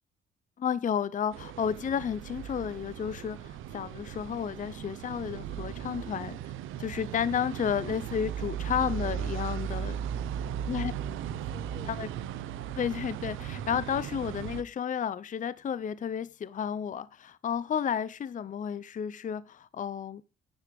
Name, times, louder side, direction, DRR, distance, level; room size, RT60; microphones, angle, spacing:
voice 1, 0.6-6.5 6.8-9.9 10.7-10.9 11.8-12.1 12.8-20.2, left 8 dB, 40° left, 0.6 m, -32 dB
sound 1, 1.3-14.6, right 9 dB, 90° right, 1.0 m, -37 dB
voice 2, 9.6-11.1 11.4-12.0, right 4 dB, 25° right, 4.0 m, -54 dB
10.5 x 9.8 x 3.4 m
cardioid pair, 90°, 20 cm